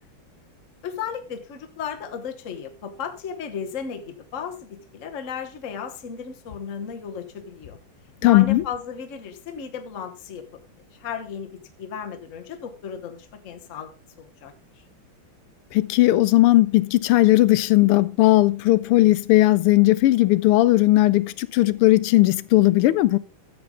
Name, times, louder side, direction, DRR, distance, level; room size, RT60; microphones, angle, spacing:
voice 1, 0.8-7.8 8.2-10.6 10.9-11.5 11.8-14.5, left 7 dB, 45° left, 1.3 m, -34 dB
voice 2, 8.2-8.6 15.7-23.2, left 17 dB, 90° left, 1.6 m, -17 dB
13.0 x 7.8 x 3.7 m
omnidirectional pair, 2.4 m